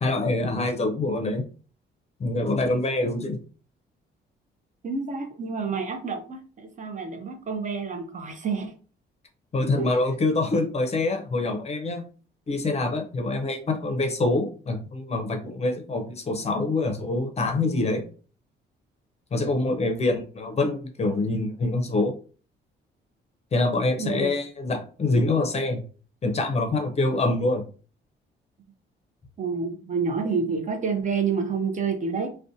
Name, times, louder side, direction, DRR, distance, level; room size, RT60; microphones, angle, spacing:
voice 1, 0.0-1.4 2.2-3.4 9.5-12.0 12.5-18.0 19.3-22.1 23.5-25.8 26.2-27.6, left 2 dB, 35° left, 5 dB, 0.5 m, -25 dB
voice 2, 4.8-8.7 9.8-9.9 24.0-24.3 29.4-32.3, right 5 dB, 40° right, 5 dB, 0.5 m, -28 dB
2.5 x 2.1 x 2.6 m, 0.38 s
cardioid pair, 90°, 20 cm